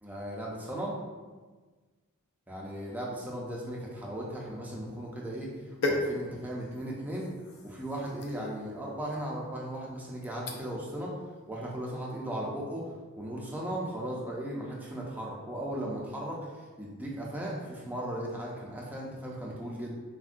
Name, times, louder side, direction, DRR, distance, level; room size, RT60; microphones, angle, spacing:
voice 1, 0.0-1.0 2.5-7.3 7.6-11.1 11.5-12.8 13.2-20.0, right 1 dB, 5° right, -4 dB, 0.4 m, -37 dB
sound 1, 4.4-10.9 11.3-11.6, left 2 dB, 75° left, 0.4 m, -38 dB
3.5 x 2.1 x 2.4 m, 1.4 s
head